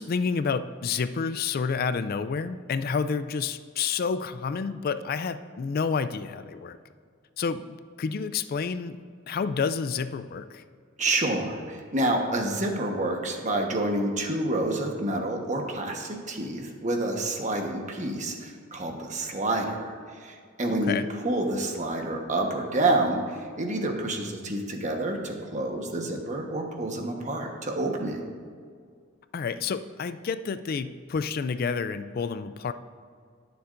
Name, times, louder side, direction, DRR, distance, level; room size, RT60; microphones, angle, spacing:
voice 1, 0.0-6.8 7.4-9.0 9.3-10.6 20.7-21.1 29.3-32.7, left 5 dB, 50° left, 11 dB, 0.4 m, -29 dB
voice 2, 11.0-19.9 20.2-21.0 21.2-23.2 23.6-28.2, right 2 dB, 40° right, 2 dB, 1.2 m, -28 dB
20.5 x 7.0 x 2.6 m, 2.1 s
head